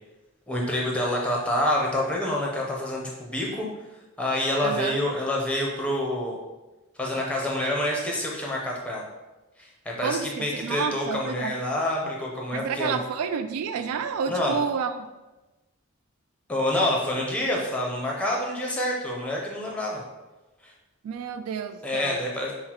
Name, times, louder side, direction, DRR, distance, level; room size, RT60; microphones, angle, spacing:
voice 1, 0.5-3.7 4.2-6.4 7.0-9.0 9.6-13.0 14.3-14.6 16.5-20.0 20.6-20.7 21.8-22.5, left 1 dB, 5° left, -2 dB, 0.6 m, -27 dB
voice 2, 4.6-5.0 10.0-11.5 12.5-15.1 21.0-22.2, right 6 dB, 90° right, 10 dB, 0.3 m, -30 dB
5.7 x 2.0 x 2.9 m, 1.1 s
head